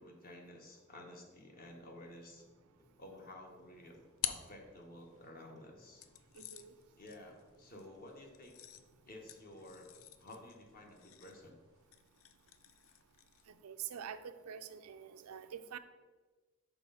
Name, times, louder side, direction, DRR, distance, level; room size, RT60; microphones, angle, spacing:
voice 1, 0.0-2.4 3.0-4.0 4.2-6.0 7.0-8.5 9.1-9.9 10.2-11.6, left 1 dB, 40° left, 2 dB, 1.1 m, -53 dB
Clock, 1.6-10.7, left 1 dB, 15° left, 0.6 m, -69 dB
sound 1, 3.5-5.3 6.0-13.6, left 11 dB, 65° left, 0.4 m, -48 dB
voice 2, 6.3-6.7 13.5-15.8, right 8 dB, 85° right, 10 dB, 0.4 m, -46 dB
6.0 x 3.4 x 5.5 m, 1.3 s
head